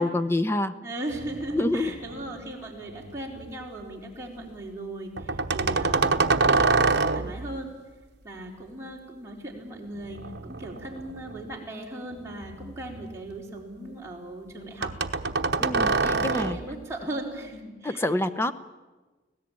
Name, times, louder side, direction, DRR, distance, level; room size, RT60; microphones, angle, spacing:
voice 1, 0.0-0.7 1.5-1.9 15.6-16.6 17.8-18.5, left 1 dB, 15° left, 11 dB, 0.8 m, -26 dB
voice 2, 0.8-6.9 7.1-7.7 8.2-14.9 15.7-18.1, right 1 dB, 15° right, -3 dB, 4.4 m, -38 dB
sound 1, 1.1-2.4 2.9-3.5 5.2-7.5 10.0-11.6 12.1-13.3 14.8-16.8, right 4 dB, 60° right, 1.0 m, -26 dB
25.0 x 17.0 x 9.0 m, 1.2 s
head